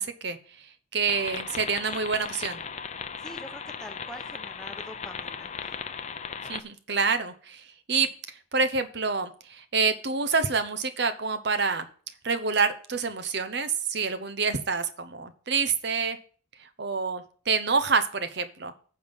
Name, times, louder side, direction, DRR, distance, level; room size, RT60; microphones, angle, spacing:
voice 1, 0.0-2.6 6.5-11.9 12.2-16.2 16.6-18.7, right 5 dB, 60° right, 10 dB, 0.9 m, -27 dB
sound 1, 1.1-6.6, left 6 dB, 35° left, 0.6 m, -37 dB
voice 2, 3.2-5.5, equal, 5° left, 6 dB, 1.0 m, -44 dB
9.5 x 5.5 x 7.1 m, 0.43 s
head